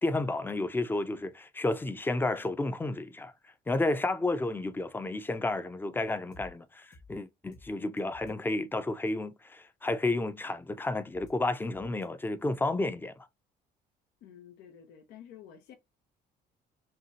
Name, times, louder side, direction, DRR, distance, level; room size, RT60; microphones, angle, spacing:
voice 1, 0.0-3.3 3.7-13.3, left 2 dB, 10° left, 0.5 m, -31 dB
sound 1, 6.3-6.5 6.9-7.1 7.5-7.7 8.0-8.3 11.1-11.3 11.7-12.1, left 3 dB, 45° left, 1.5 m, -53 dB
voice 2, 14.2-15.8, left 9 dB, 85° left, 1.0 m, -51 dB
5.8 x 2.3 x 2.8 m
cardioid pair, 110°, 17 cm